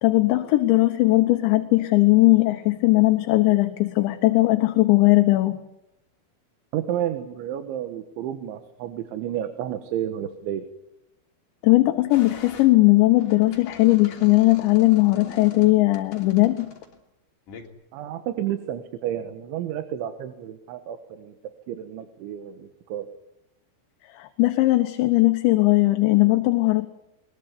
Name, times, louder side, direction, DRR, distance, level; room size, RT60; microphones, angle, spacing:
voice 1, 0.0-5.6 11.6-16.7 24.1-26.9, left 19 dB, 75° left, 7 dB, 3.4 m, -19 dB
voice 2, 6.7-10.7 17.9-21.3 21.7-23.1, right 11 dB, 80° right, 8 dB, 3.7 m, -31 dB
sound 1, 12.1-12.7 13.2-17.0 17.5-17.6, left 4 dB, 45° left, 4.2 m, -43 dB
23.0 x 21.5 x 9.6 m, 0.87 s
omnidirectional pair, 5.4 m